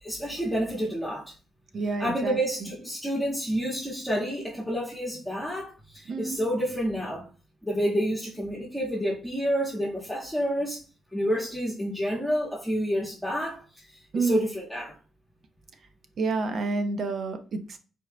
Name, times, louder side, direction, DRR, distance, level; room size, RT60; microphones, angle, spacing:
voice 1, 0.0-1.3 2.0-7.3 7.6-10.8 11.1-15.0, equal, ahead, 1.6 m, -29 dB
voice 2, 1.7-2.7 6.1-6.4 14.1-14.4 16.2-17.8, right 3 dB, 60° right, 0.8 m, -29 dB
4.6 x 4.6 x 2.2 m
cardioid pair, 80°, 0 cm